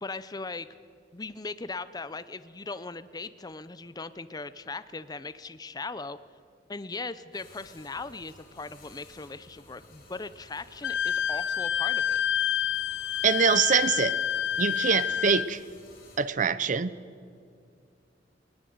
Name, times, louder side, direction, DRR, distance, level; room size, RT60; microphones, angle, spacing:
voice 1, 0.0-0.7 1.1-6.2 6.7-12.2, left 3 dB, 20° left, 14 dB, 0.6 m, -39 dB
sound 1, 7.3-16.2, left 2 dB, 55° left, 5.8 m, -54 dB
Wind instrument woodwind instrument, 10.8-15.5, left 9 dB, 75° left, 0.6 m, -28 dB
voice 2, 13.2-14.2 14.6-15.6 16.2-16.9, right 6 dB, 45° right, 17 dB, 0.6 m, -24 dB
19.5 x 18.5 x 7.9 m, 2.3 s
head